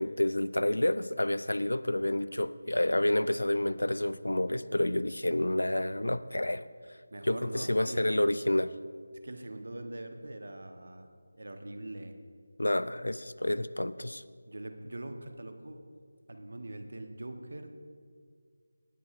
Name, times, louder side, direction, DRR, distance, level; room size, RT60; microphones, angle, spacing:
voice 1, 0.0-6.7 7.2-8.7 12.6-14.2, left 1 dB, 75° left, 16 dB, 0.4 m, -29 dB
voice 2, 7.1-8.1 9.2-11.1 11.3-12.1 14.5-15.8 16.3-17.9, right 1 dB, 60° right, 6 dB, 1.0 m, -42 dB
18.0 x 9.6 x 2.5 m, 2.1 s
figure-of-eight pair, 160°, 0 cm